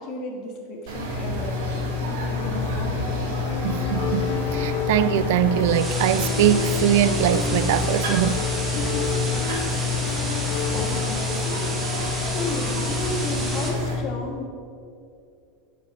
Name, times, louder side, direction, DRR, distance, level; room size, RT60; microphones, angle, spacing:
voice 1, 0.0-3.1 8.7-9.1 9.9-10.3 10.7-14.5, left 2 dB, 40° left, 2.0 m, -33 dB
sound 1, 0.9-14.0, left 3 dB, 85° right, 2.4 m, -28 dB
sound 2, 2.3-11.1, left 12 dB, 65° left, 0.4 m, -31 dB
voice 2, 3.6-8.4, right 11 dB, 70° right, 0.3 m, -22 dB
sound 3, 5.6-13.7, right 2 dB, 15° right, 1.7 m, -32 dB
10.0 x 7.4 x 5.0 m
supercardioid pair, 160°, 0 cm